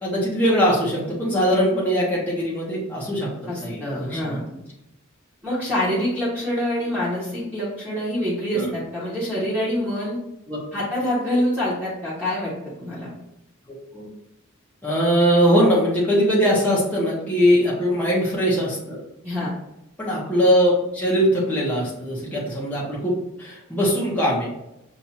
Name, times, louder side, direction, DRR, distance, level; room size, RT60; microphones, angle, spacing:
voice 1, 0.0-3.3 3.6-4.4 8.5-8.7 10.5-10.6 13.7-14.1 14.8-19.0 19.4-19.5 20.0-24.5, equal, 10° left, -7 dB, 1.0 m, -21 dB
voice 2, 3.5-4.4 5.4-10.1 10.7-13.1 17.4-17.6 19.2-19.5, equal, 10° right, -9 dB, 1.3 m, -26 dB
5.9 x 2.6 x 2.8 m, 0.87 s
head